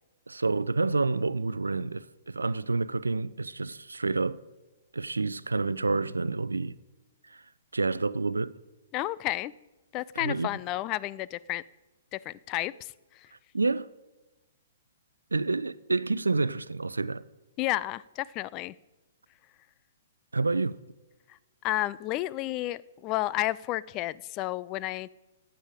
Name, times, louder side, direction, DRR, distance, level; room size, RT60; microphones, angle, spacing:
voice 1, 0.3-4.4 4.9-6.7 7.3-7.4 7.7-8.5 10.2-10.5 13.5-13.9 15.3-17.2 20.3-20.8, right 3 dB, 80° right, 0.4 m, -28 dB
voice 2, 8.9-9.5 9.9-11.6 12.1-12.9 17.6-18.8 21.6-25.1, left 16 dB, 30° left, 0.3 m, -31 dB
15.0 x 9.0 x 5.1 m
figure-of-eight pair, 120°, 0 cm